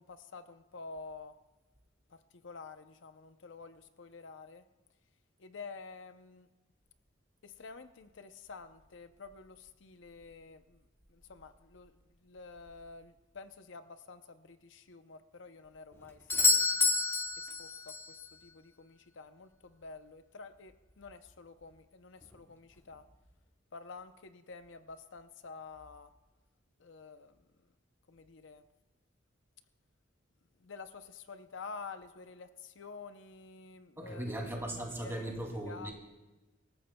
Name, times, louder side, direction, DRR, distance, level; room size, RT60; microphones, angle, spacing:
voice 1, 0.7-1.3 2.4-2.8 3.0-3.1 3.4-3.7 4.0-4.6 5.5-6.1 7.6-7.9 8.5-9.1 10.0-10.6 11.7-11.8 12.3-13.0 13.4-13.8 14.1-14.2 14.9-16.1 19.2-19.3 19.8-20.7 21.0-21.2 21.5-21.7 22.9-23.0 23.7-24.1 24.5-24.8 25.1-26.1 26.9-27.2 28.4-28.6 30.7-30.9 31.5-32.5 32.8-34.2 35.0-35.1 35.7-35.9, left 4 dB, 70° left, 10 dB, 0.6 m, -47 dB
Doorbell, 16.3-18.1 22.2-22.3, left 3 dB, 10° left, 0.9 m, -28 dB
voice 2, 34.0-35.9, right 1 dB, 15° right, 0 dB, 2.5 m, -38 dB
25.5 x 14.0 x 2.2 m, 1.1 s
head